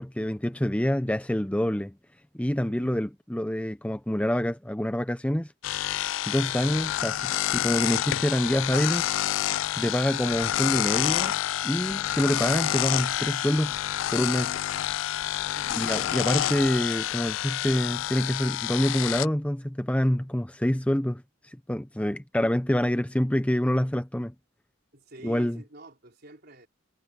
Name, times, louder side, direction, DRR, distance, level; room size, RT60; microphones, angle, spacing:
voice 1, 0.0-1.9 2.3-5.5 6.3-9.1 9.7-11.4 11.6-13.8 14.1-14.5 15.8-24.3 25.2-25.6, equal, 5° left, 0.7 m, -26 dB
voice 2, 2.7-3.1 6.4-6.8 15.5-15.9 24.9-26.7, right 1 dB, 55° right, 4.2 m, -48 dB
sound 1, 5.6-19.3, left 12 dB, 70° left, 0.3 m, -28 dB
head